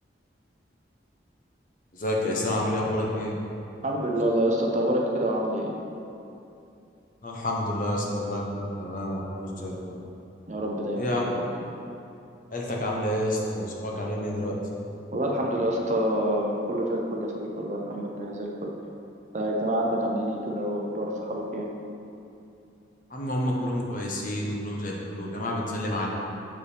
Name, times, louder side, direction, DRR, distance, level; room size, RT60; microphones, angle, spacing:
voice 1, 1.9-3.3 7.2-10.0 11.0-11.2 12.5-14.5 23.1-26.1, left 1 dB, 45° left, -2 dB, 0.9 m, -29 dB
voice 2, 3.8-5.7 10.5-11.5 15.1-18.7 19.3-21.7, right 1 dB, 40° right, -1 dB, 0.6 m, -27 dB
7.2 x 5.0 x 3.3 m, 2.7 s
head